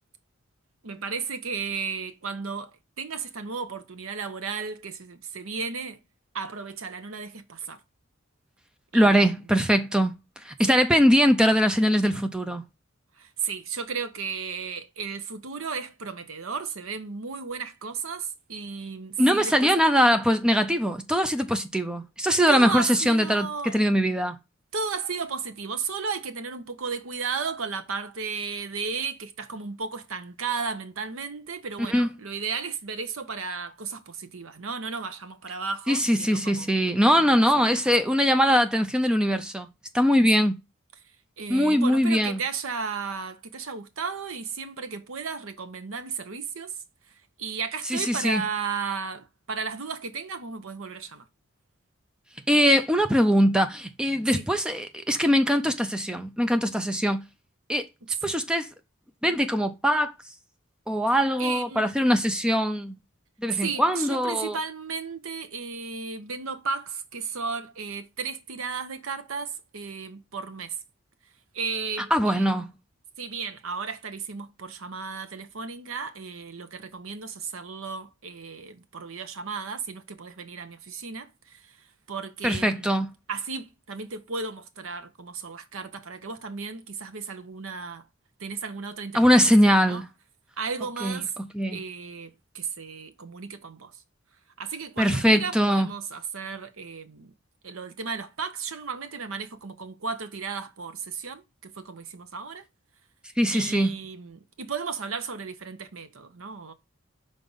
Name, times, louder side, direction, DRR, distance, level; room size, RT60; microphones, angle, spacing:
voice 1, 0.8-2.7 3.0-6.0 6.3-7.8 8.9-9.2 13.2-20.0 22.5-23.7 24.7-36.7 37.1-37.8 40.4-40.5 41.4-46.8 47.4-51.3 54.3-54.5 58.0-58.2 61.4-61.9 63.5-70.8 71.5-72.5 73.2-81.8 82.1-82.9 83.3-88.1 88.4-89.2 89.6-90.0 90.6-91.3 91.7-94.0 94.6-97.4 97.6-102.6 103.5-106.7, right 5 dB, 80° right, 0.9 m, -34 dB
voice 2, 8.9-10.1 10.4-12.6 19.2-24.4 31.9-32.1 35.9-39.7 39.9-40.6 41.5-42.4 47.9-48.4 52.5-57.2 57.7-57.8 58.2-58.7 59.2-60.1 60.9-62.9 63.4-64.6 72.1-72.7 82.4-83.1 89.1-90.0 91.0-91.2 91.5-91.8 95.0-95.9 103.4-103.9, equal, 5° right, 0.5 m, -22 dB
5.3 x 3.7 x 5.4 m
head